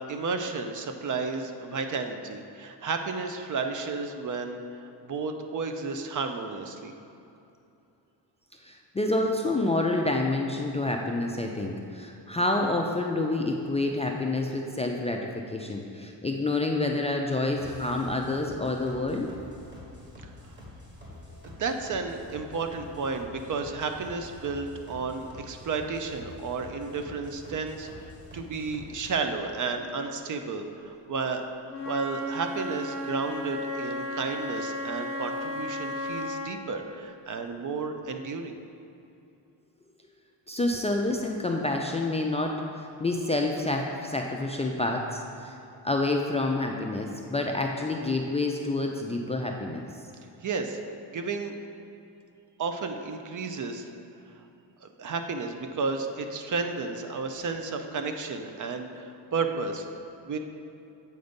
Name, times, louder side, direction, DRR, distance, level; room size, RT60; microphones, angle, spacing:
voice 1, 0.1-6.9 20.2-20.6 21.4-31.4 31.8-38.6 50.4-50.8 51.1-51.5 52.6-53.9 54.8-59.8 60.2-60.4, right 4 dB, 45° right, 6 dB, 0.6 m, -32 dB
voice 2, 8.6-19.3 40.5-45.6 45.8-49.8, left 2 dB, 15° left, 0 dB, 0.4 m, -28 dB
sound 1, 17.6-29.2, left 1 dB, 25° right, 1.7 m, -47 dB
Wind instrument woodwind instrument, 31.7-36.5, left 1 dB, 40° left, 1.0 m, -34 dB
7.9 x 4.0 x 5.2 m, 2.7 s
cardioid pair, 100°, 44 cm